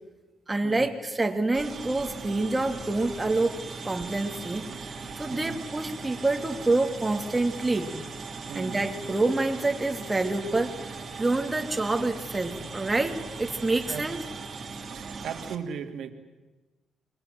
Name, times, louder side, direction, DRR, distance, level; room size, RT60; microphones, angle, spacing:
voice 1, 0.5-3.5 3.8-4.7 5.2-7.9 8.5-10.7 11.2-14.2, right 2 dB, 15° right, 4 dB, 2.8 m, -27 dB
sound 1, 1.5-15.6, right 4 dB, 45° right, 2.8 m, -39 dB
voice 2, 14.9-16.1, right 7 dB, 70° right, 6 dB, 2.7 m, -37 dB
28.0 x 23.0 x 7.8 m, 1.2 s
cardioid pair, 90°, 0 cm